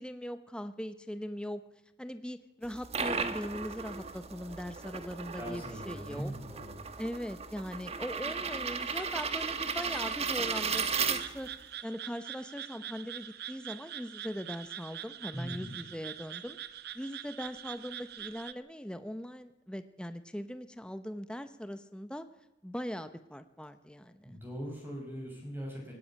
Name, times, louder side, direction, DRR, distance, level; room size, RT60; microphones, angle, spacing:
voice 1, 0.0-1.6 2.0-6.3 7.0-11.5 11.8-16.6 16.9-22.2 22.6-24.4, equal, 5° left, 10 dB, 0.9 m, -40 dB
sound 1, 2.6-11.6, right 5 dB, 35° right, 1.3 m, -35 dB
voice 2, 5.4-6.7 15.3-15.8 24.2-25.9, equal, 10° right, -1 dB, 6.0 m, -40 dB
sound 2, 10.7-18.5, right 11 dB, 55° right, 0.9 m, -44 dB
18.5 x 17.0 x 8.7 m, 0.89 s
head